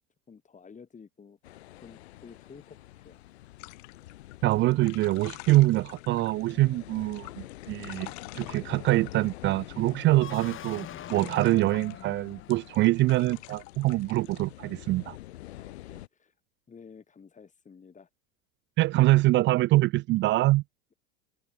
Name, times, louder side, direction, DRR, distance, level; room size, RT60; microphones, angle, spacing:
voice 1, 0.3-3.2 15.6-16.3 16.7-18.1, left 6 dB, 25° left, 6.7 m, -52 dB
sound 1, 1.4-16.1, left 16 dB, 80° left, 1.8 m, -47 dB
sound 2, 3.6-6.6 7.0-10.0 10.4-12.0 12.5-14.4, left 27 dB, 60° left, 3.6 m, -48 dB
voice 2, 4.4-15.2 18.8-20.6, right 18 dB, 35° right, 0.4 m, -24 dB
sound 3, 10.1-13.1, left 11 dB, 40° left, 7.1 m, -43 dB
hypercardioid pair, 100°, 32 cm